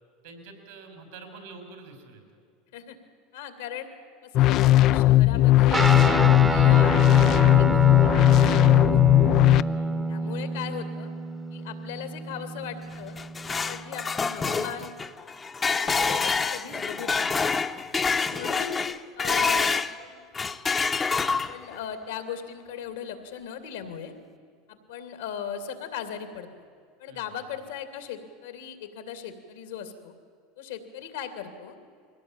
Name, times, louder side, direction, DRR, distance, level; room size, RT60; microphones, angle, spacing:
voice 1, 0.2-2.4 9.7-10.1 17.7-18.4 27.1-27.2, right 4 dB, 75° right, 5 dB, 5.0 m, -47 dB
voice 2, 3.3-3.9 4.2-5.9 6.5-9.1 10.1-11.1 11.5-13.2 13.5-14.9 15.7-17.3 18.3-18.8 19.1-20.3 21.3-24.1 24.7-26.6 27.0-30.1 30.6-31.8, left 8 dB, 80° left, 8 dB, 2.6 m, -38 dB
sound 1, 4.3-9.6, left 15 dB, 50° left, 0.5 m, -18 dB
Guitar, 5.7-14.5, right 2 dB, 15° right, 1.1 m, -28 dB
sound 2, 12.9-19.9 20.3-21.8, left 4 dB, 25° left, 0.9 m, -27 dB
22.5 x 17.0 x 8.9 m, 2.2 s
hypercardioid pair, 95°, 0 cm